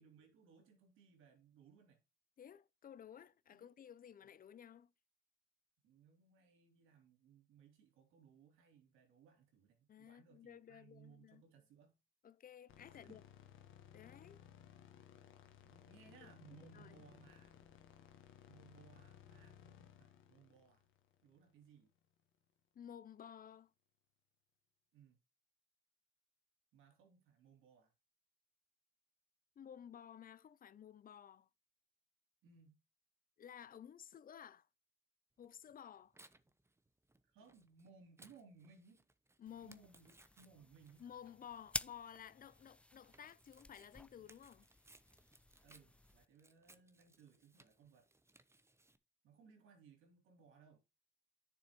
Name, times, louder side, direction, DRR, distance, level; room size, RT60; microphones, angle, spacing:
voice 1, 0.0-2.0 3.5-3.7 5.8-11.9 12.9-13.2 15.6-17.6 18.5-20.9 21.2-21.9 24.9-25.2 26.7-27.9 32.4-32.8 37.3-39.0 39.6-41.0 45.6-48.1 49.2-50.8, right 6 dB, 90° right, 3.3 m, -64 dB
voice 2, 2.4-4.9 9.9-11.4 12.2-13.2 13.9-14.4 16.2-16.9 22.7-23.7 29.6-31.5 33.4-34.7 35.4-36.2 39.4-39.8 41.0-44.7, left 9 dB, 45° left, 0.6 m, -55 dB
sound 1, 12.7-21.9, left 9 dB, 80° left, 1.5 m, -61 dB
Tearing, 35.4-49.0, right 2 dB, 15° right, 0.9 m, -68 dB
sound 2, 39.5-46.3, left 1 dB, 5° left, 0.3 m, -51 dB
10.5 x 6.9 x 3.1 m
cardioid pair, 90°, 20 cm